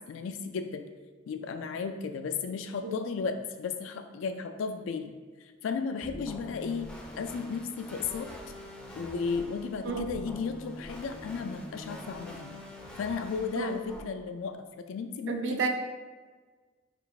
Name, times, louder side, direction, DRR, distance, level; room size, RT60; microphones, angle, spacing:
voice 1, 0.1-0.8 1.3-5.1 5.6-6.9 7.2-8.3 9.0-12.5 13.0-14.6 14.9-15.6, left 5 dB, 80° left, 7 dB, 0.3 m, -34 dB
sound 1, 6.0-14.0, left 1 dB, 5° left, 0.4 m, -45 dB
voice 2, 15.3-15.7, right 4 dB, 65° right, 4 dB, 0.4 m, -31 dB
3.3 x 2.4 x 4.0 m, 1.4 s
head